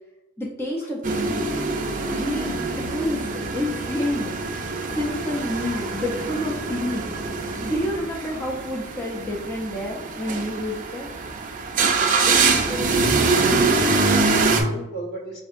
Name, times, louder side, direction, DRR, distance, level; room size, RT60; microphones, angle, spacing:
voice 1, 0.4-1.5 2.1-7.2 7.6-11.1, left 1 dB, 10° left, -2 dB, 0.4 m, -29 dB
sound 1, 1.0-14.6, right 3 dB, 40° right, 0.5 m, -24 dB
voice 2, 12.2-13.3 13.9-15.4, equal, 50° left, 0 dB, 0.9 m, -34 dB
5.7 x 2.6 x 2.4 m, 0.97 s
head